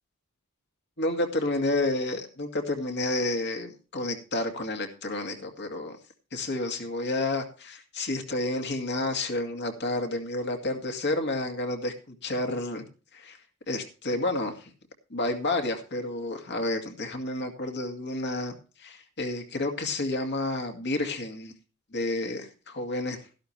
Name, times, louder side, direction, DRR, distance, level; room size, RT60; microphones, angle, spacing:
voice 1, 1.0-6.0 6.3-12.9 13.1-13.4 13.7-14.7 15.1-21.5 21.9-23.2, left 2 dB, 55° left, 4 dB, 2.2 m, -30 dB
13.5 x 11.5 x 3.3 m, 0.35 s
head